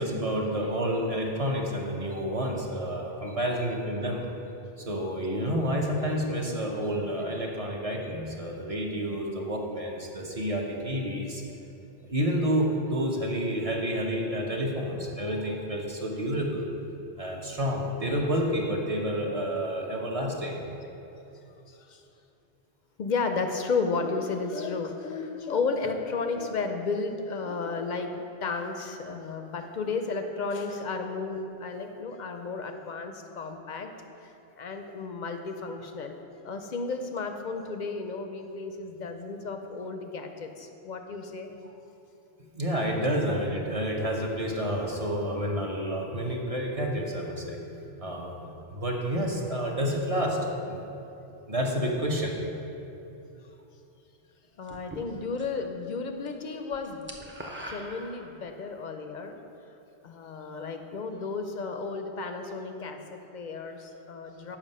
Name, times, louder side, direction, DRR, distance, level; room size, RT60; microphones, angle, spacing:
voice 1, 0.0-4.2 4.8-11.4 12.1-16.6 17.2-20.6 42.5-47.6 48.0-50.4 50.7-50.8 51.5-52.3, equal, 35° right, 0 dB, 0.7 m, -29 dB
voice 2, 21.7-22.0 23.0-33.9 34.2-36.2 36.4-41.5 54.6-57.1 57.7-59.4 60.0-64.6, left 4 dB, 55° left, 6 dB, 0.5 m, -33 dB
sound 1, 54.7-55.7 56.0-56.3 56.6-58.7, right 1 dB, 20° right, 0.4 m, -42 dB
7.3 x 5.4 x 5.4 m, 2.9 s
omnidirectional pair, 1.1 m